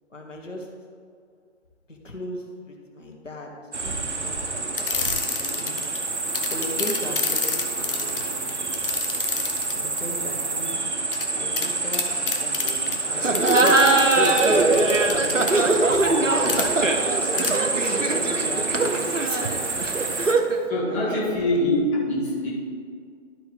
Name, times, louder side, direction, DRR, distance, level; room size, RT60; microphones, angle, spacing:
voice 1, 0.1-0.7 1.9-3.5 3.8-5.0 5.3-5.8 6.5-8.6 9.7-11.1 11.3-13.5 14.2-15.3 15.6-16.7 17.3-20.1 20.8-21.5, left 1 dB, 85° left, 0 dB, 1.5 m, -37 dB
sound 1, 3.7-20.3, right 3 dB, 65° right, 0.9 m, -28 dB
sound 2, 4.7-6.0 6.3-10.0 11.1-11.3 11.6-11.7 11.9-13.0 13.3-15.5 16.5-16.7 17.4-17.6 17.8-17.9, left 5 dB, 45° left, 0.9 m, -28 dB
Laughter, 13.2-20.6, right 2 dB, 90° right, 0.8 m, -21 dB
voice 2, 20.7-22.5, left 1 dB, 10° left, -7 dB, 1.0 m, -24 dB
12.5 x 4.6 x 3.6 m, 2.2 s
figure-of-eight pair, 140°, 37 cm